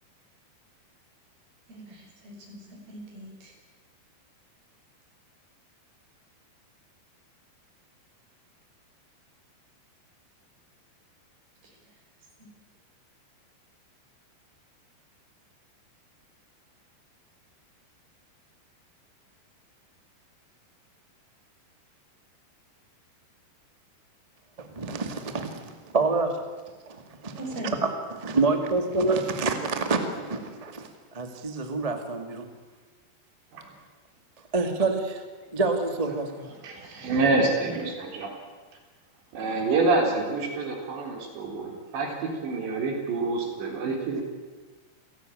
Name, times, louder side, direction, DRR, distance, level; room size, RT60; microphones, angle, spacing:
voice 1, 1.7-3.5 27.4-27.8, right 1 dB, 60° right, 1 dB, 7.3 m, -40 dB
voice 2, 24.6-26.3 26.8-32.5 34.5-35.2 35.5-36.5, right 3 dB, 20° right, 6 dB, 0.9 m, -27 dB
voice 3, 36.6-38.4 39.3-42.1 42.4-44.2, right 3 dB, 80° right, 2 dB, 6.1 m, -27 dB
28.0 x 17.5 x 9.3 m, 1.3 s
omnidirectional pair, 5.0 m